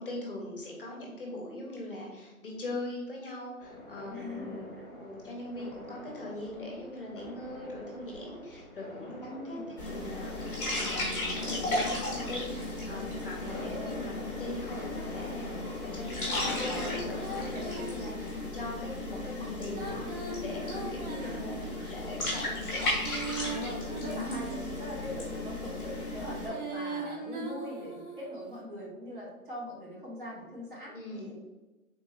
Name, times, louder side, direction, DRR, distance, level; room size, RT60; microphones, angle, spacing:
voice 1, 0.0-4.7 4.9-21.6 21.9-22.6 30.9-31.3, left 1 dB, 40° left, -2 dB, 0.7 m, -41 dB
sound 1, 3.6-17.8, left 1 dB, 15° right, 0.7 m, -44 dB
voice 2, 4.1-4.9 9.3-9.6 13.4-14.1 21.2-21.9 23.4-31.3, equal, 35° right, -4 dB, 0.9 m, -42 dB
sound 2, 9.8-26.5, left 2 dB, 10° left, 1.0 m, -35 dB
Female singing, 16.3-18.5 19.6-21.9 22.7-24.9 26.1-28.4, right 2 dB, 75° right, 1.5 m, -40 dB
3.7 x 2.6 x 3.0 m, 1.2 s
hypercardioid pair, 160°, 44 cm